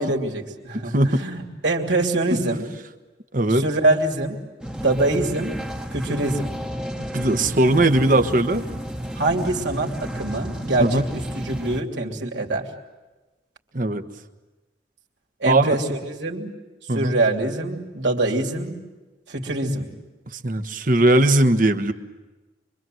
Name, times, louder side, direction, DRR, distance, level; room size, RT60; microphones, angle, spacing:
voice 1, 0.0-2.7 3.5-4.4 4.8-5.6 5.9-6.5 9.2-12.7 15.4-16.5 16.9-18.8 19.3-19.9, right 2 dB, 80° right, 0 dB, 3.0 m, -24 dB
voice 2, 0.7-1.2 2.3-2.4 3.3-3.6 7.1-8.6 10.8-11.1 13.7-14.0 15.5-15.8 16.9-17.1 20.4-21.9, right 1 dB, 45° right, 8 dB, 1.2 m, -19 dB
sound 1, 4.6-11.8, equal, 5° right, 1.0 m, -32 dB
25.5 x 24.0 x 7.8 m, 1.2 s
head